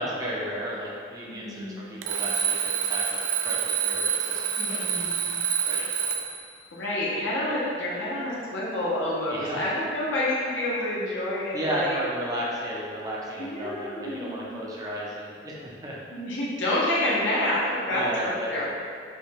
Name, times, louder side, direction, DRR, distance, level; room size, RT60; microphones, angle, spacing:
voice 1, 0.0-5.1 5.6-6.1 9.3-9.7 11.5-16.0 17.9-18.6, equal, 20° right, -5 dB, 0.5 m, -34 dB
voice 2, 1.3-2.0 4.6-5.4 6.7-12.0 13.4-14.5 16.1-18.6, left 1 dB, 75° left, -7 dB, 0.8 m, -28 dB
Alarm, 2.0-6.4, right 7 dB, 85° right, 0.4 m, -27 dB
5.1 x 2.2 x 3.4 m, 2.2 s
head